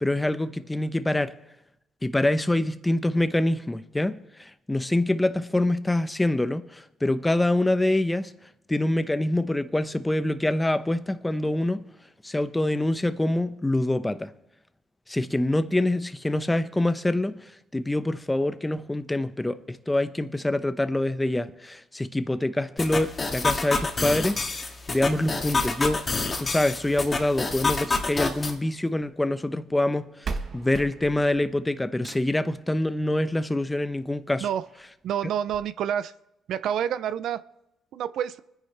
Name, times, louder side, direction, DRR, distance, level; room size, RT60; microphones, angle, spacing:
voice 1, 0.0-1.3 2.0-8.3 8.7-11.8 12.2-14.3 15.1-17.4 17.7-26.0 26.4-34.4, left 1 dB, 10° left, 0.8 m, -25 dB
sound 1, 22.8-28.5, left 3 dB, 30° left, 2.0 m, -28 dB
sound 2, 27.9-29.1 29.9-30.0 30.2-32.5 33.9-34.0 34.5-34.6 34.8-34.9 35.5-35.6, right 4 dB, 55° right, 1.3 m, -38 dB
voice 2, 35.0-36.1 36.5-37.4 37.9-38.4, right 9 dB, 75° right, 0.5 m, -28 dB
25.0 x 10.0 x 3.4 m
cardioid pair, 90°, 0 cm